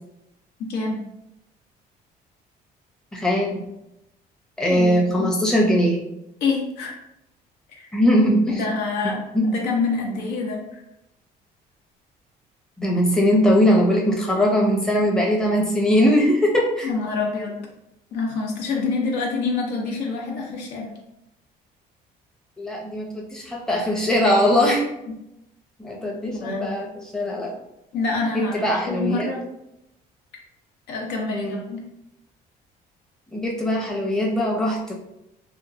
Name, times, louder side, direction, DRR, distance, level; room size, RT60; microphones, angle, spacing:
voice 1, 0.7-1.0 4.7-5.3 6.4-6.9 7.7-7.9 8.5-9.2 9.4-10.8 16.8-17.6 18.1-21.0 26.3-26.7 27.9-28.5 28.8-29.4 30.9-31.8, left 4 dB, 80° left, -1 dB, 0.7 m, -26 dB
voice 2, 3.1-3.6 4.6-6.0 7.9-8.6 9.0-9.5 12.8-16.9 22.6-24.8 25.8-27.5 28.3-29.3 31.3-31.6 33.3-34.9, equal, 5° left, -2 dB, 0.6 m, -21 dB
2.9 x 2.3 x 2.5 m, 0.86 s
cardioid pair, 110°, 17 cm